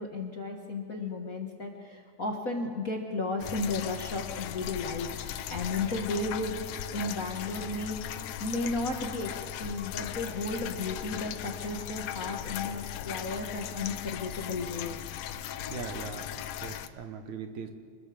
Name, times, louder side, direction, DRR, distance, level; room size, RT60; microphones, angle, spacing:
voice 1, 0.0-6.6 6.9-15.0, left 2 dB, 40° left, 1 dB, 1.4 m, -34 dB
sound 1, 3.4-16.9, left 11 dB, 75° left, 1.8 m, -38 dB
voice 2, 15.7-17.7, right 6 dB, 75° right, 6 dB, 2.7 m, -40 dB
26.0 x 21.0 x 5.1 m, 2.3 s
omnidirectional pair, 3.4 m